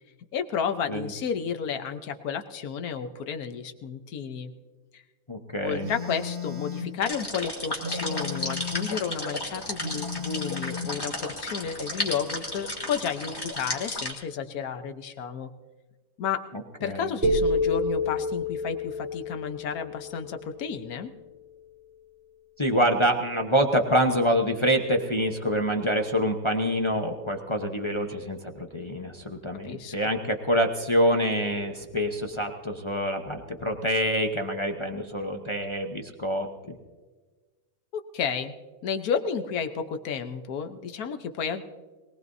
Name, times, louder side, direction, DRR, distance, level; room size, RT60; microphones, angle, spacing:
voice 1, 0.3-4.5 4.9-5.0 5.6-15.5 16.2-16.4 16.8-21.1 29.6-29.9 37.9-38.5 38.8-41.6, left 6 dB, 55° left, 8 dB, 1.2 m, -32 dB
voice 2, 5.3-5.9 16.8-17.1 22.6-36.8, equal, 35° left, 3 dB, 0.5 m, -26 dB
Telephone, 5.8-7.0 7.8-9.0 9.8-11.0, left 5 dB, 80° right, 2.4 m, -34 dB
sound 1, 7.0-14.1, left 1 dB, 10° left, 2.1 m, -34 dB
sound 2, 17.2-21.3, left 2 dB, 5° right, 2.9 m, -29 dB
22.5 x 19.0 x 2.7 m, 1.3 s
omnidirectional pair, 2.2 m